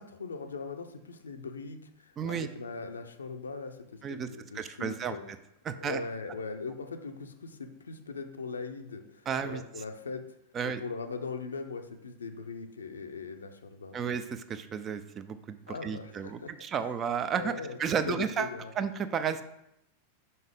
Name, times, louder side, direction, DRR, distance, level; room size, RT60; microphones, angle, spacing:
voice 1, 0.0-5.2 5.7-10.2 10.6-14.0 15.7-16.5 17.4-18.7, left 4 dB, 70° left, 7 dB, 0.5 m, -40 dB
voice 2, 2.2-2.5 4.0-4.3 4.5-5.2 5.6-6.0 9.3-9.6 10.5-10.8 13.9-17.5 17.8-18.5 18.8-19.4, right 7 dB, 25° right, 11 dB, 0.4 m, -32 dB
5.5 x 5.4 x 3.6 m, 0.81 s
figure-of-eight pair, 90°, 0 cm